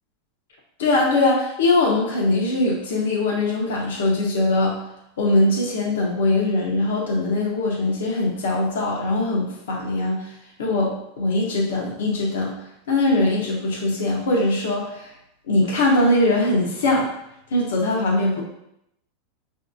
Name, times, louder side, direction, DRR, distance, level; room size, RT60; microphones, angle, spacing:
voice 1, 0.8-4.8 5.2-10.3 10.6-12.6 12.9-15.1 15.5-17.1 17.5-18.4, left 2 dB, 80° left, -2 dB, 0.8 m, -21 dB
5.1 x 2.7 x 2.5 m, 0.81 s
hypercardioid pair, 105°, 0 cm